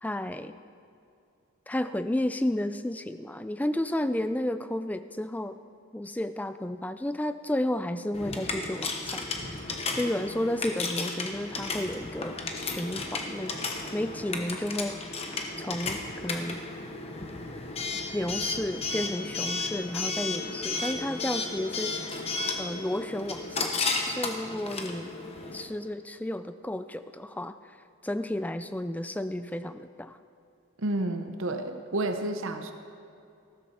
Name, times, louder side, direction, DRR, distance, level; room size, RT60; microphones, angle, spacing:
voice 1, 0.0-0.6 1.7-5.6 5.9-13.6 13.9-15.3 15.6-16.6 18.1-22.2 22.6-25.1 25.5-27.8 28.0-30.2, left 1 dB, 5° left, 11 dB, 0.3 m, -32 dB
Coin (dropping) / Alarm, 8.1-25.6, left 3 dB, 30° left, 1.0 m, -34 dB
voice 2, 30.8-32.7, right 1 dB, 70° right, 7 dB, 0.8 m, -30 dB
14.5 x 13.0 x 4.3 m, 2.6 s
head